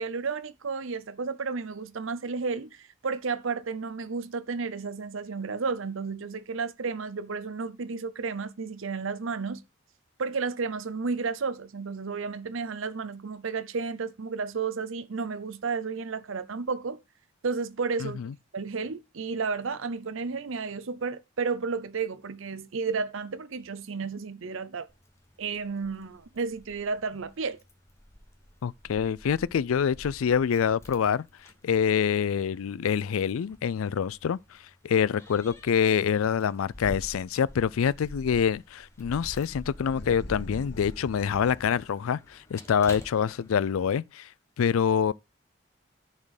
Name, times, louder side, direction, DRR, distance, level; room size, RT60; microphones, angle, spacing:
voice 1, 0.0-9.6 10.2-17.0 17.4-18.2 18.5-24.9 25.4-27.6, right 4 dB, 75° right, 0.7 m, -32 dB
voice 2, 18.0-18.3 28.6-31.2 31.6-34.4 34.8-44.3 44.6-45.1, left 7 dB, 85° left, 0.4 m, -26 dB
Keys jangling, 24.9-44.0, equal, 15° left, 1.0 m, -47 dB
sound 1, 39.9-42.1, left 2 dB, 50° left, 0.8 m, -44 dB
10.5 x 4.5 x 4.9 m
head